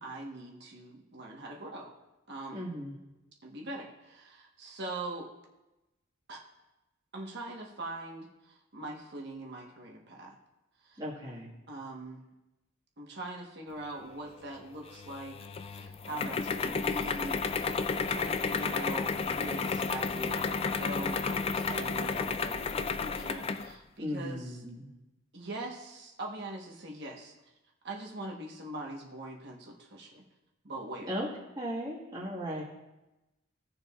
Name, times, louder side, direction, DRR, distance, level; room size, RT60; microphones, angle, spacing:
voice 1, 0.0-1.9 2.3-2.7 3.4-5.3 6.3-6.4 7.1-10.3 10.8-11.0 11.7-12.2 13.0-24.6 25.3-27.4 27.8-30.2 30.6-31.1, right 1 dB, 55° right, 0 dB, 1.3 m, -42 dB
voice 2, 2.5-3.0 11.0-11.5 24.0-24.9 31.1-31.3 31.6-32.6, equal, 20° right, -6 dB, 1.8 m, -36 dB
sound 1, 14.9-23.7, left 4 dB, 30° left, 0.3 m, -32 dB
17.0 x 6.9 x 2.5 m, 0.99 s
head